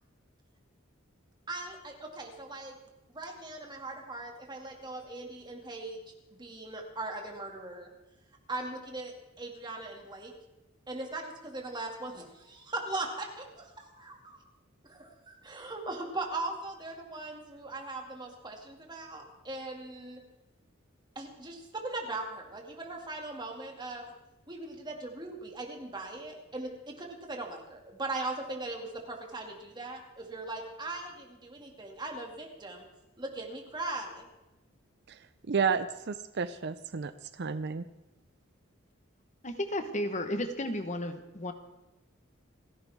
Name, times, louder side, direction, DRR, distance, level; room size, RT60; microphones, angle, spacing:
voice 1, 1.5-2.7 3.1-7.9 8.5-10.3 10.9-14.4 14.8-20.2 21.2-24.1 24.5-32.8 33.2-34.3, right 2 dB, 20° right, 2 dB, 2.3 m, -39 dB
voice 2, 35.5-37.8, right 6 dB, 55° right, 13 dB, 0.5 m, -31 dB
voice 3, 39.4-41.5, left 1 dB, 35° left, 8 dB, 1.2 m, -33 dB
29.5 x 11.0 x 3.6 m, 1.0 s
head